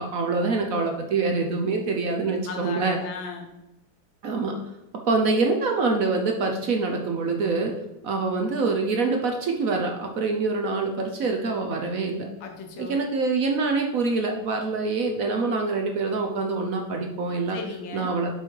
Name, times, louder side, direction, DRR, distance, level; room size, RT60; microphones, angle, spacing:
voice 1, 0.0-3.0 4.2-4.6 5.1-7.8 8.0-12.3 12.8-17.6 17.9-18.3, right 3 dB, 65° right, 3 dB, 0.9 m, -25 dB
voice 2, 2.5-3.5 12.4-13.0 17.5-18.1, left 5 dB, 75° left, 3 dB, 1.8 m, -36 dB
6.3 x 5.2 x 4.5 m, 0.92 s
omnidirectional pair, 2.2 m